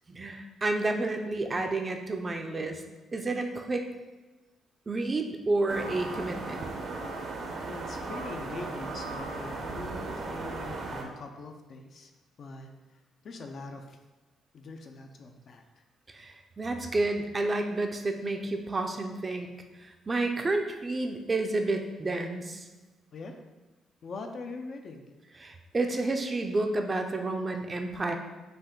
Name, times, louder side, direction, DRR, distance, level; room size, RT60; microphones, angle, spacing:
voice 1, 0.1-2.8 3.1-3.8 4.9-6.7 16.1-19.5 19.8-22.6 25.4-28.2, right 2 dB, 30° right, 5 dB, 0.5 m, -30 dB
sound 1, 5.7-11.0, right 3 dB, 65° right, 0.7 m, -36 dB
voice 2, 7.7-12.1 12.4-12.7 13.2-14.0 14.5-15.6 23.1-23.4 24.0-25.1, left 3 dB, 55° left, 4 dB, 0.5 m, -42 dB
5.1 x 2.5 x 3.7 m, 1.2 s
cardioid pair, 90°, 0 cm